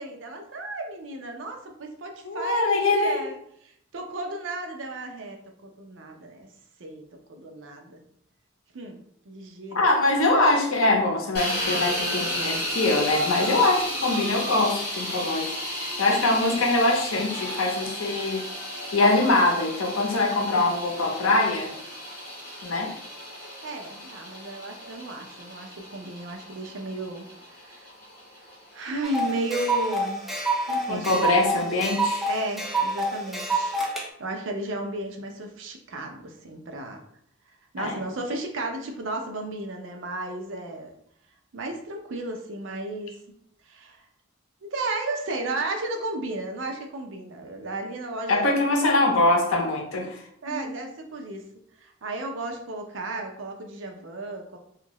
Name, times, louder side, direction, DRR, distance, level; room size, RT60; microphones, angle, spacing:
voice 1, 0.0-6.5 6.8-8.0 8.7-9.0 9.2-9.9 23.6-27.9 28.7-30.3 30.7-31.3 32.3-33.8 34.2-37.0 37.7-40.9 41.5-43.2 43.6-44.0 44.6-48.6 50.4-51.4 51.8-54.6, right 2 dB, 65° right, 4 dB, 0.5 m, -34 dB
voice 2, 2.3-3.2 9.7-18.4 18.9-21.7 22.6-22.9 30.9-32.3 37.8-37.9 48.3-50.2 50.5-50.6, left 2 dB, 85° left, 1 dB, 0.7 m, -23 dB
sound 1, 11.3-29.3, left 1 dB, 50° left, 1.0 m, -34 dB
sound 2, 29.0-34.1, right 2 dB, ahead, 0.3 m, -27 dB
2.7 x 2.4 x 3.0 m, 0.69 s
head